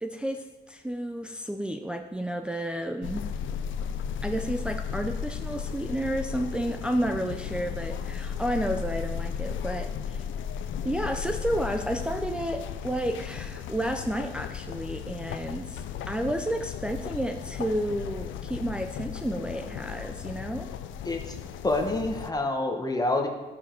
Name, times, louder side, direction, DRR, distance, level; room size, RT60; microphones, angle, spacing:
voice 1, 0.0-3.2 4.2-10.3 10.8-20.7, right 1 dB, 5° right, 4 dB, 0.5 m, -31 dB
sound 1, 3.0-22.3, left 7 dB, 75° left, 0.6 m, -35 dB
voice 2, 21.0-21.4 21.6-23.3, left 2 dB, 20° left, 3 dB, 1.1 m, -27 dB
8.8 x 7.2 x 4.5 m, 1.2 s
cardioid pair, 90°, 20 cm